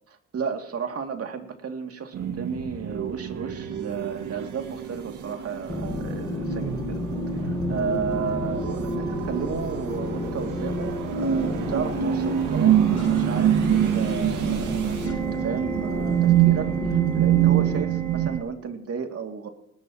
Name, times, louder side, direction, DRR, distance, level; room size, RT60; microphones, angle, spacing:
voice 1, 0.3-7.0 7.3-19.5, right 6 dB, 50° right, 4 dB, 2.7 m, -33 dB
sound 1, 2.1-18.4, right 10 dB, 85° right, 2.1 m, -25 dB
sound 2, 5.7-17.8, left 2 dB, 10° left, 1.5 m, -32 dB
sound 3, 13.0-15.2, left 2 dB, 70° left, 4.9 m, -44 dB
19.5 x 19.5 x 3.1 m, 0.82 s
cardioid pair, 90°, 30 cm